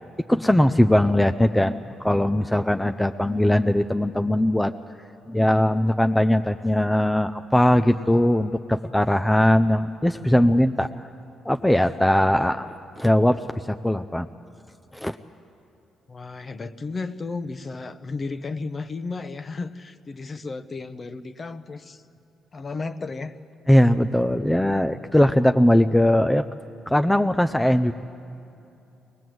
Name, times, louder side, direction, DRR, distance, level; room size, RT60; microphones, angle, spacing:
voice 1, 0.3-4.7 5.3-10.9 11.5-14.3 14.9-15.2 23.7-26.4 26.9-27.9, left 1 dB, 5° left, 7 dB, 0.5 m, -20 dB
voice 2, 16.1-22.0 22.5-23.4, left 3 dB, 35° left, 11 dB, 0.9 m, -33 dB
22.0 x 20.5 x 7.8 m, 2.8 s
cardioid pair, 90°, 0 cm